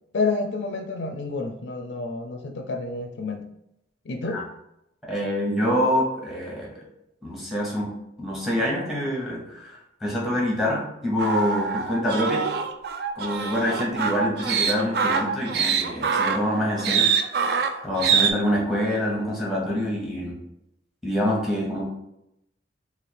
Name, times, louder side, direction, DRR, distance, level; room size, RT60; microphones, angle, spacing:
voice 1, 0.1-3.5 4.0-4.4, left 3 dB, 70° left, 5 dB, 0.4 m, -29 dB
voice 2, 5.0-6.8 7.2-7.9 8.2-12.5 13.1-17.4 17.8-20.4 21.0-21.8, equal, ahead, -3 dB, 0.9 m, -26 dB
sound 1, 11.2-18.3, right 6 dB, 55° right, 0.3 m, -24 dB
3.3 x 2.4 x 4.2 m, 0.83 s
head